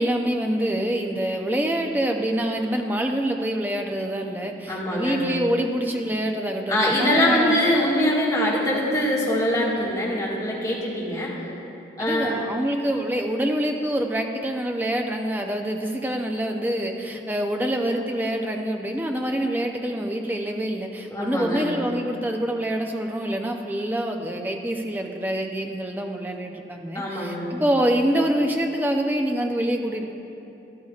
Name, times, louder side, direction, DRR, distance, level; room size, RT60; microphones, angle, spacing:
voice 1, 0.0-7.6 12.0-30.1, right 1 dB, 10° right, 2 dB, 0.5 m, -26 dB
voice 2, 4.7-5.2 6.7-11.3 12.0-12.3 21.1-21.7 26.9-27.5, left 1 dB, 20° left, -7 dB, 1.8 m, -23 dB
12.5 x 12.0 x 2.4 m, 2.9 s
head